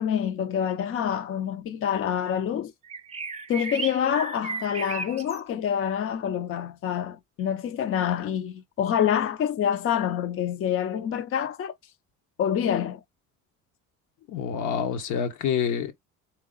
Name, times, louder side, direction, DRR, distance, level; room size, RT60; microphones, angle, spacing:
voice 1, 0.0-2.7 3.5-11.7 12.4-13.0, left 9 dB, 45° left, 0.6 m, -27 dB
sound 1, 2.8-5.4, right 4 dB, 20° right, 0.5 m, -34 dB
voice 2, 14.3-15.9, left 7 dB, 75° left, 1.2 m, -27 dB
3.8 x 2.9 x 3.8 m
cardioid pair, 120°, 30 cm